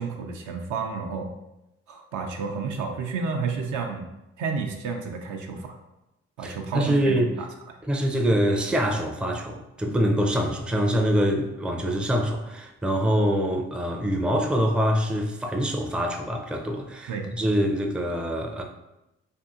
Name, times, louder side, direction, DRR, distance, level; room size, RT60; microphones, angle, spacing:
voice 1, 0.0-1.3 1.9-4.1 4.4-5.8 6.4-7.2 17.1-17.3, right 5 dB, 70° right, 3 dB, 0.5 m, -30 dB
voice 2, 6.4-7.3 7.9-18.6, equal, 5° right, 1 dB, 0.4 m, -25 dB
2.7 x 2.6 x 2.4 m, 0.92 s
supercardioid pair, 45°, 31 cm